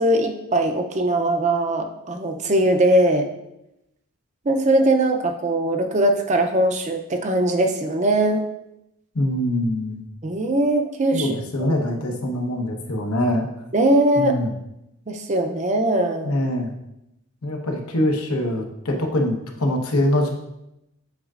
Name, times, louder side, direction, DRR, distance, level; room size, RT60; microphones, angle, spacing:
voice 1, 0.0-3.3 4.5-8.4 10.2-11.3 11.6-11.7 13.7-14.4 15.1-16.4, right 1 dB, 35° right, 5 dB, 0.5 m, -20 dB
voice 2, 9.1-10.1 11.1-13.5 14.2-14.5 16.2-16.8 17.4-20.3, left 1 dB, 90° left, 1 dB, 1.1 m, -23 dB
8.0 x 4.8 x 2.5 m, 0.86 s
head